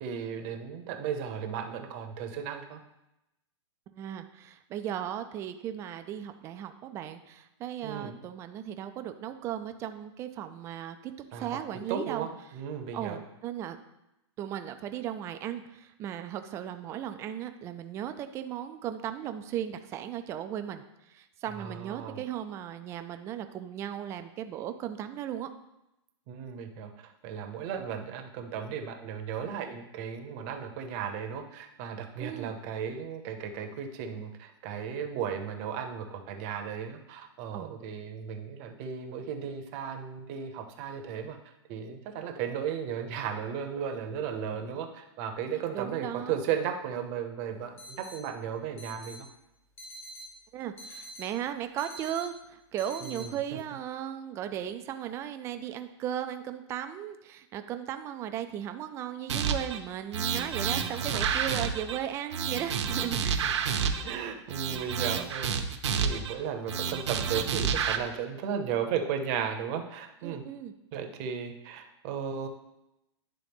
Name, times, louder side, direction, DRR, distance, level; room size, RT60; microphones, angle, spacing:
voice 1, 0.0-2.8 7.8-8.2 11.3-11.6 11.9-13.2 21.5-22.2 26.3-41.4 41.7-49.3 53.0-53.3 60.7-61.7 63.7-65.6 66.0-70.4 70.9-72.5, right 7 dB, 35° right, 5 dB, 0.8 m, -35 dB
voice 2, 3.9-12.3 12.9-13.8 14.4-25.5 32.2-32.5 37.5-37.8 45.7-46.4 50.5-63.6 70.2-70.7, right 10 dB, 20° right, 8 dB, 0.3 m, -36 dB
sound 1, 47.8-48.2 48.8-49.2 49.8-50.2 50.8-51.2 51.8-52.2 52.8-53.2, right 1 dB, 15° left, 1.1 m, -45 dB
sound 2, 59.3-59.8 60.1-62.0 62.3-64.2 64.5-66.3 66.7-68.0, right 7 dB, 75° right, 0.8 m, -29 dB
10.5 x 3.7 x 3.5 m, 0.90 s
hypercardioid pair, 155°, 15 cm